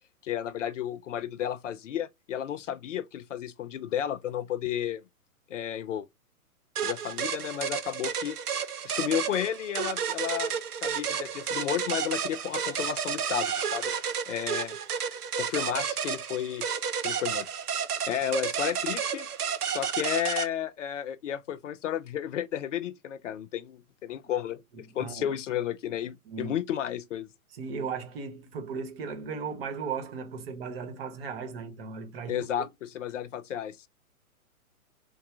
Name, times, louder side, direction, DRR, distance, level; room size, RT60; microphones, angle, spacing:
voice 1, 0.2-5.0 5.5-6.1 6.8-8.4 8.8-10.5 10.8-13.9 14.3-14.8 15.4-16.7 17.0-17.5 18.1-19.3 19.6-27.3 32.3-33.9, left 10 dB, 60° left, 0.5 m, -32 dB
sound 1, 6.8-20.5, right 7 dB, 85° right, 0.7 m, -31 dB
voice 2, 24.9-25.4 26.3-26.6 27.5-32.7, right 5 dB, 40° right, 1.0 m, -36 dB
3.5 x 2.3 x 4.4 m
hypercardioid pair, 125°, 44 cm